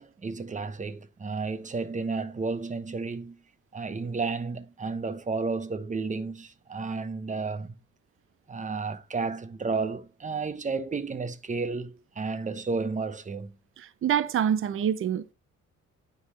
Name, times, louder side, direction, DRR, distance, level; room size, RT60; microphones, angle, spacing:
voice 1, 0.0-3.4 3.7-7.7 8.5-13.5, right 4 dB, 25° right, 0.9 m, -32 dB
voice 2, 13.8-15.3, right 9 dB, 45° right, 0.6 m, -26 dB
9.5 x 3.9 x 4.1 m
cardioid pair, 90°, 30 cm